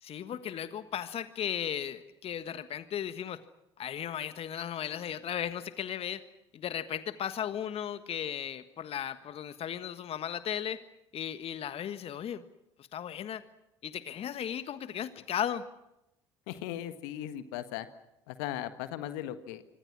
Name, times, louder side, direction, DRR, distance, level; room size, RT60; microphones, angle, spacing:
voice 1, 0.0-3.4 3.8-6.2 6.5-10.8 11.1-12.4 12.8-13.4 13.8-15.6, left 9 dB, 45° left, 12 dB, 1.5 m, -36 dB
voice 2, 16.5-17.9 18.3-19.6, left 12 dB, 65° left, 11 dB, 1.7 m, -37 dB
26.5 x 25.0 x 6.2 m, 0.86 s
figure-of-eight pair, 60°, 14 cm